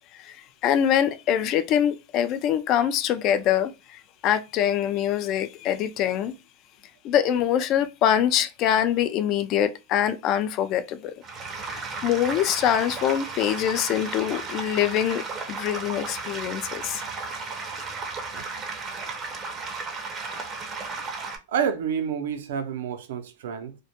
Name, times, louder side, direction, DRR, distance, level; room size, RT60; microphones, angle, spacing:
voice 1, 0.1-6.3 7.0-11.1 11.6-15.2 15.5-17.0, left 10 dB, 40° left, 0.3 m, -24 dB
sound 1, 11.2-21.4, right 4 dB, 25° right, 0.5 m, -34 dB
voice 2, 20.1-20.5 20.9-23.8, right 7 dB, 75° right, 0.5 m, -30 dB
2.2 x 2.1 x 2.8 m
supercardioid pair, 130°, 0 cm